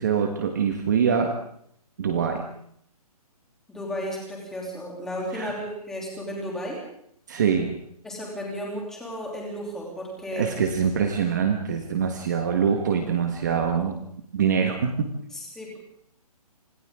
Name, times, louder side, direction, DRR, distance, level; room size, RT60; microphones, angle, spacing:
voice 1, 0.0-1.4 2.0-2.5 5.3-5.6 7.3-7.8 10.3-14.0 14.3-15.1, right 7 dB, 30° right, 4 dB, 1.6 m, -24 dB
voice 2, 3.7-6.8 8.0-10.5 15.3-15.8, equal, ahead, -3 dB, 3.2 m, -34 dB
30.0 x 27.0 x 3.8 m, 0.69 s
hypercardioid pair, 180°, 20 cm